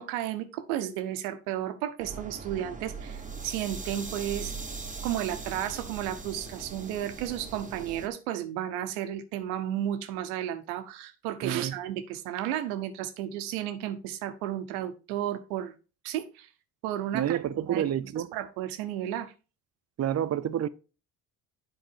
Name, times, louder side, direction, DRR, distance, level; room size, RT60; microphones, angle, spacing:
voice 1, 0.0-4.5 5.0-15.7 16.0-16.5 16.8-17.4 17.7-17.9 18.3-19.3, right 11 dB, 85° right, 0.9 m, -33 dB
sound 1, 2.0-8.1, right 4 dB, 20° right, 1.2 m, -40 dB
voice 2, 11.4-11.7 17.1-18.3 20.0-20.7, right 10 dB, 40° right, 0.6 m, -29 dB
7.7 x 4.6 x 4.5 m
hypercardioid pair, 60°, 42 cm